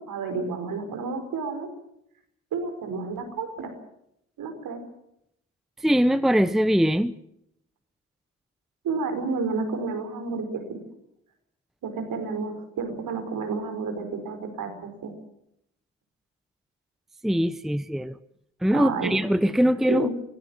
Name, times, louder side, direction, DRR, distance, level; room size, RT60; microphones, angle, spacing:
voice 1, 0.1-1.7 2.5-3.7 4.4-4.8 8.8-10.8 11.8-15.1 18.7-19.1 19.9-20.1, right 4 dB, 65° right, 5.1 m, -30 dB
voice 2, 5.8-7.1 17.2-18.2 18.6-20.1, equal, ahead, 0.9 m, -22 dB
24.0 x 16.0 x 7.4 m
hypercardioid pair, 40°, 36 cm